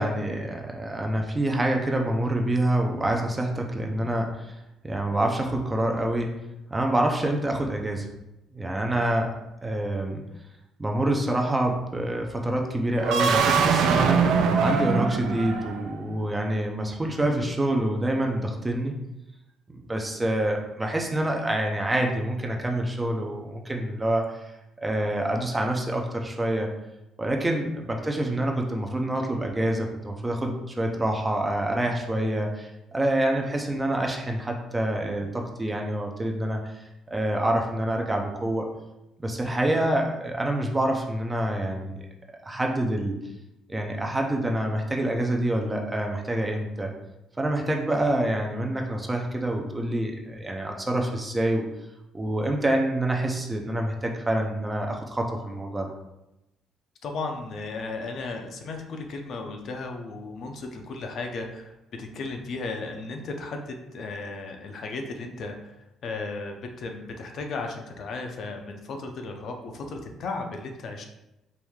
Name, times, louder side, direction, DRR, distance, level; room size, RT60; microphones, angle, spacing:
voice 1, 0.0-4.6 4.8-6.3 6.7-8.1 8.5-9.3 9.6-10.2 10.8-14.3 14.6-19.0 19.7-24.3 24.8-26.7 27.2-32.7 32.9-36.6 37.1-38.7 39.2-42.0 42.4-43.2 43.7-46.9 47.4-51.7 52.1-55.9, right 1 dB, 10° right, 1 dB, 0.4 m, -26 dB
sound 1, 13.0-16.0, right 5 dB, 75° right, 0.4 m, -22 dB
voice 2, 57.0-65.7 66.0-71.1, left 3 dB, 45° left, 4 dB, 0.5 m, -35 dB
4.6 x 2.6 x 3.5 m, 0.92 s
cardioid pair, 170°, 0 cm